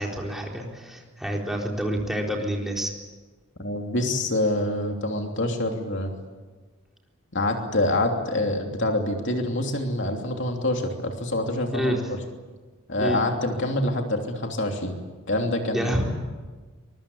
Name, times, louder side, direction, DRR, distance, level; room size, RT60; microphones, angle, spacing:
voice 1, 0.0-2.9 11.7-12.0 13.0-13.2 15.7-16.1, equal, ahead, -1 dB, 4.0 m, -28 dB
voice 2, 3.6-6.1 7.3-12.0 12.9-15.0 15.3-16.1, left 1 dB, 55° left, 3 dB, 3.0 m, -26 dB
24.5 x 23.0 x 8.6 m, 1.3 s
head